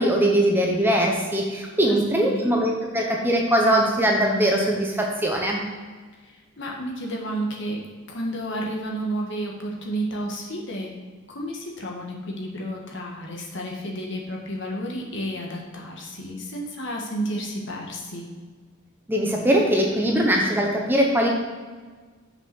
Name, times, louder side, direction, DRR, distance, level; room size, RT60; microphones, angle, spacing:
voice 1, 0.0-5.6 19.1-21.3, right 1 dB, 10° right, 0 dB, 0.9 m, -21 dB
voice 2, 1.9-2.5 6.2-7.8 8.1-10.9 11.3-18.3, right 1 dB, 55° left, -1 dB, 1.6 m, -31 dB
6.9 x 5.9 x 6.1 m, 1.4 s
head